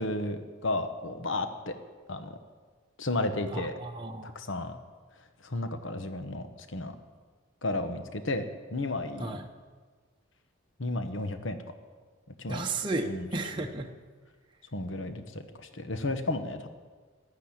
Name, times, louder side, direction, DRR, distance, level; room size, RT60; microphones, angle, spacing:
voice 1, 0.0-1.7 2.1-2.4 3.0-3.7 4.2-4.8 5.4-6.9 7.6-8.5 8.7-9.4 10.8-11.6 12.4-12.7 13.1-13.3 14.7-16.7, left 2 dB, 65° left, 8 dB, 1.1 m, -33 dB
voice 2, 3.5-4.3 9.2-9.5 12.5-13.9, right 2 dB, 20° right, 1 dB, 0.8 m, -33 dB
12.5 x 12.0 x 8.8 m, 1.5 s
head